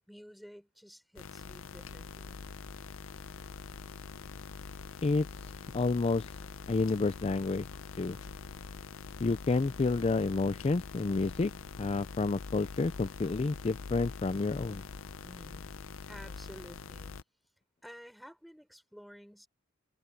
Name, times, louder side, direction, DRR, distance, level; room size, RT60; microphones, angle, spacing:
voice 1, 0.0-2.4 15.2-15.7 16.1-17.2 17.8-19.5, equal, ahead, 4.5 m, -52 dB
sound 1, 1.2-17.2, left 4 dB, 90° left, 0.7 m, -44 dB
voice 2, 5.0-6.4 6.7-7.7 8.0-8.2 9.2-11.5 11.8-14.8, left 3 dB, 30° left, 0.4 m, -30 dB
head